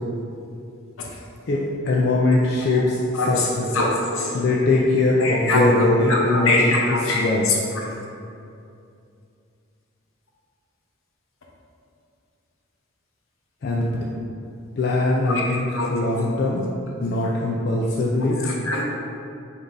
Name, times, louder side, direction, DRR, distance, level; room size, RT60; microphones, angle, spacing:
voice 1, 1.5-3.7 4.3-7.5 13.6-14.0 14.8-16.7 17.0-18.4, left 2 dB, 50° left, -4 dB, 0.4 m, -21 dB
voice 2, 3.7-4.3 5.2-7.2 7.8-7.9 15.3-15.9 18.2-18.8, left 2 dB, 75° left, -2 dB, 0.8 m, -23 dB
3.9 x 3.5 x 3.8 m, 2.5 s
head